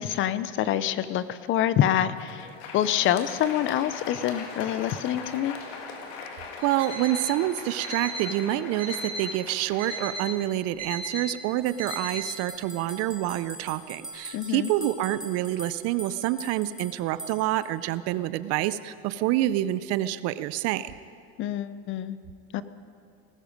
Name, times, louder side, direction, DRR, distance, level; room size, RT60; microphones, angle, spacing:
voice 1, 0.0-5.6 14.3-14.7 21.4-22.2 22.5-22.6, left 11 dB, 40° left, 15 dB, 0.6 m, -26 dB
Crowd, 2.2-11.0, left 5 dB, 75° left, 2.3 m, -41 dB
Alarm, 6.6-7.3 7.8-8.3 8.8-9.3 9.8-10.3 10.8-11.3 11.8-12.3, right 2 dB, 30° right, 5.3 m, -35 dB
voice 2, 6.6-20.9, right 14 dB, 50° right, 15 dB, 0.6 m, -27 dB
sound 1, 11.7-17.7, right 1 dB, ahead, 0.9 m, -43 dB
19.0 x 14.0 x 5.2 m, 2.4 s
supercardioid pair, 125°, 31 cm